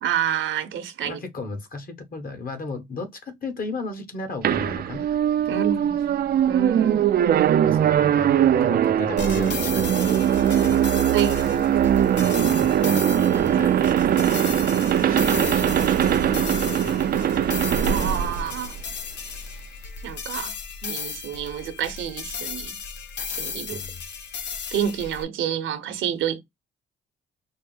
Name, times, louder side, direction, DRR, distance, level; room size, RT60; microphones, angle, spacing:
voice 1, 0.0-1.2 5.5-6.2 6.5-7.1 11.1-11.9 17.8-18.7 20.0-20.5 20.8-22.8 23.3-23.8 24.7-26.4, right 9 dB, 75° right, 0.9 m, -29 dB
voice 2, 1.0-5.0 5.4-5.7 7.6-10.8 12.2-13.8 15.0-17.3 23.7-24.0, left 3 dB, 45° left, 1.4 m, -35 dB
sound 1, 4.4-19.2, right 10 dB, 50° right, 0.5 m, -21 dB
sound 2, 9.2-25.2, left 6 dB, 65° left, 0.9 m, -35 dB
4.4 x 2.1 x 3.4 m
cardioid pair, 90°, 20 cm